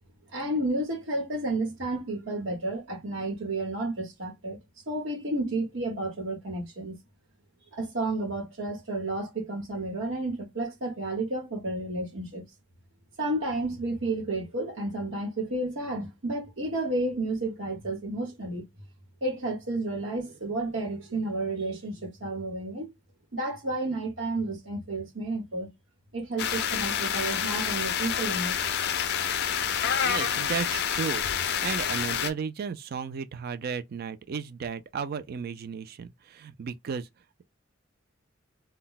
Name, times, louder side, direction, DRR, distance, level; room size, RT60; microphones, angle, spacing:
voice 1, 0.3-4.6 4.9-6.9 7.7-12.4 13.2-18.6 19.2-22.9 23.3-25.7 26.1-28.5, right 2 dB, 85° right, 1.1 m, -31 dB
sound 1, 26.4-32.3, left 8 dB, 55° left, 0.4 m, -28 dB
voice 2, 30.0-31.3 31.6-37.1, right 6 dB, 50° right, 0.4 m, -34 dB
2.2 x 2.0 x 3.8 m
head